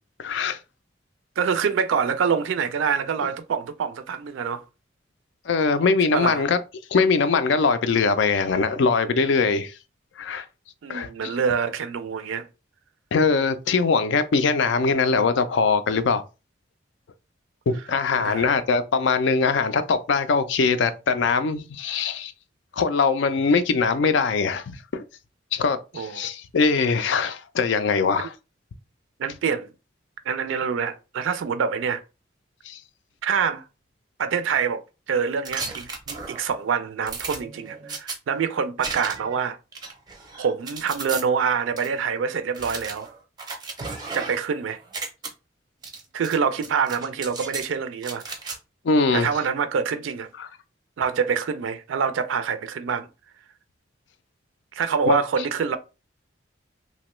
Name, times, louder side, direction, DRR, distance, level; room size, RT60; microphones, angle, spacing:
voice 1, 0.2-0.6 5.5-6.6 6.9-9.7 10.2-10.5 10.9-11.3 13.1-16.2 17.7-22.3 22.7-25.0 25.5-28.3 32.6-32.8 48.8-49.3 50.4-50.5 55.1-55.2, left 4 dB, 70° left, 0.4 m, -22 dB
voice 2, 1.4-4.6 6.1-6.4 10.8-12.5 18.2-18.5 25.9-26.3 29.2-29.7 30.3-32.0 33.2-33.6 34.2-39.6 40.4-43.1 44.1-44.8 46.1-48.2 49.1-50.3 51.0-53.1 54.7-55.8, right 6 dB, 80° right, 0.4 m, -26 dB
sound 1, 35.5-36.6 37.1-38.2 38.8-39.4 39.7-41.2 41.8-41.9 42.5-44.5 44.8-45.3 45.8-46.4 46.6-47.7 48.0-48.6, right 4 dB, 20° right, 0.5 m, -35 dB
2.9 x 2.2 x 3.0 m
head